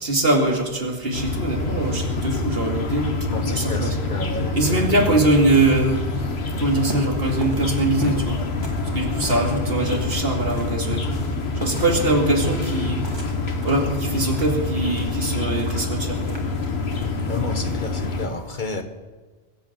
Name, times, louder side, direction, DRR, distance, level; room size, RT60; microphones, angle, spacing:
voice 1, 0.0-3.1 3.4-4.0 4.5-6.0 6.6-8.4 8.9-11.2 11.6-13.1 13.6-16.4, right 2 dB, 65° right, 2.6 m, -22 dB
sound 1, 1.1-18.3, left 3 dB, 80° left, 1.7 m, -26 dB
voice 2, 3.3-5.1 17.3-18.8, left 3 dB, 50° left, 1.4 m, -30 dB
sound 2, 5.2-17.7, equal, 25° right, 2.5 m, -40 dB
21.5 x 8.3 x 7.4 m
omnidirectional pair, 1.1 m